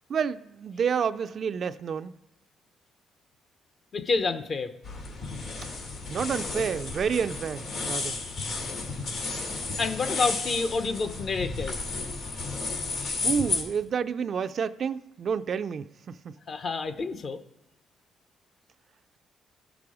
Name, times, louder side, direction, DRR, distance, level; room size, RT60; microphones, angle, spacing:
voice 1, 0.1-2.1 6.1-8.2 13.2-16.3, right 7 dB, 55° right, 0.3 m, -29 dB
voice 2, 3.9-4.7 9.6-11.8 16.5-17.4, left 4 dB, 50° left, 0.8 m, -29 dB
sound 1, 4.8-13.6, left 3 dB, 75° left, 2.3 m, -33 dB
15.5 x 6.1 x 4.8 m
cardioid pair, 90°, 0 cm